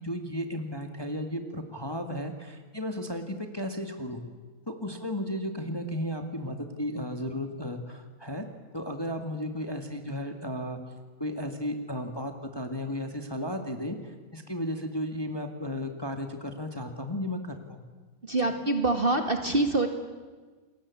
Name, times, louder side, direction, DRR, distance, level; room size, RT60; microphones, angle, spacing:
voice 1, 0.0-4.2 4.7-8.4 8.7-10.8 11.2-17.8, left 1 dB, 10° left, 5 dB, 1.9 m, -34 dB
voice 2, 18.2-19.9, right 2 dB, 25° right, 5 dB, 2.0 m, -25 dB
29.0 x 21.0 x 8.5 m, 1.3 s
omnidirectional pair, 2.2 m